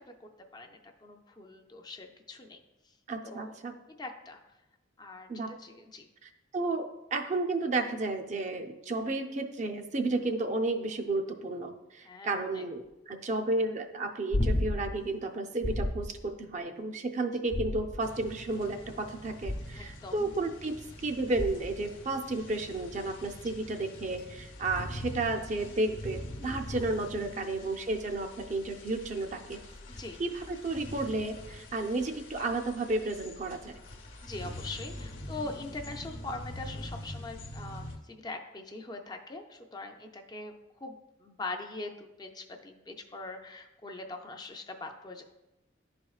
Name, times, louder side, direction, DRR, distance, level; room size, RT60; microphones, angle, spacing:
voice 1, 0.2-3.0 3.2-3.5 4.0-4.4 5.0-6.1 10.2-10.4 12.0-12.6 17.3-17.4 19.7-20.3 26.4-26.6 27.3-27.7 29.9-30.2 34.2-45.2, left 2 dB, 20° left, 4 dB, 0.4 m, -43 dB
voice 2, 3.1-3.7 5.3-5.5 6.2-20.7 21.0-29.6 30.2-33.8, right 2 dB, 40° right, 5 dB, 0.5 m, -32 dB
sound 1, 14.3-15.0 15.6-16.2 17.5-18.2 19.4-19.9 21.4-21.8 24.2-24.3, left 1 dB, 55° left, 0.8 m, -31 dB
sound 2, 18.0-38.0, left 1 dB, 80° left, 0.9 m, -44 dB
11.0 x 4.3 x 2.4 m, 0.99 s
head